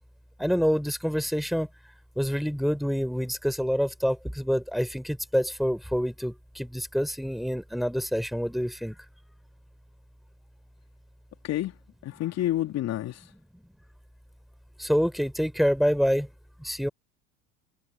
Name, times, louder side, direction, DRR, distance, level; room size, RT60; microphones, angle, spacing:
voice 1, 0.4-1.7 2.2-9.0 14.8-16.3 16.6-16.9, equal, ahead, 4.3 m, -27 dB
voice 2, 12.0-13.2, left 13 dB, 45° left, 3.1 m, -28 dB
figure-of-eight pair, 70°, 36 cm